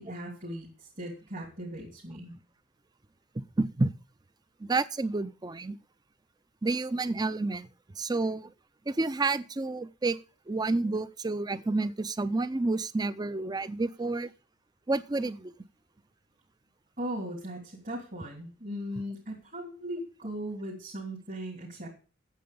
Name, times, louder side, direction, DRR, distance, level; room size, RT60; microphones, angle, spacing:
voice 1, 0.0-2.3 17.0-21.9, equal, 45° right, 3.2 m, -38 dB
voice 2, 3.6-3.9 4.6-5.8 6.6-7.7 8.0-8.5 8.9-10.2 10.5-14.3 14.9-15.5, right 3 dB, 20° right, 0.5 m, -29 dB
9.2 x 7.7 x 6.8 m
head